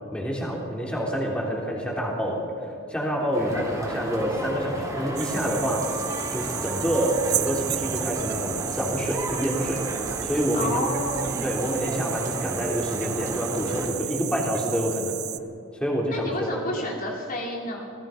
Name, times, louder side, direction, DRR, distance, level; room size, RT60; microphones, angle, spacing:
voice 1, 0.1-6.0 6.3-9.8 10.2-10.9 11.4-15.2 15.7-16.6, equal, 5° left, -2 dB, 3.7 m, -27 dB
sound 1, 3.3-13.9, right 1 dB, 15° right, 3.8 m, -33 dB
sound 2, 5.2-15.4, right 13 dB, 50° right, 0.7 m, -33 dB
voice 2, 10.5-11.6 16.1-17.9, left 1 dB, 40° left, -1 dB, 2.8 m, -30 dB
28.0 x 19.0 x 5.3 m, 2.5 s
head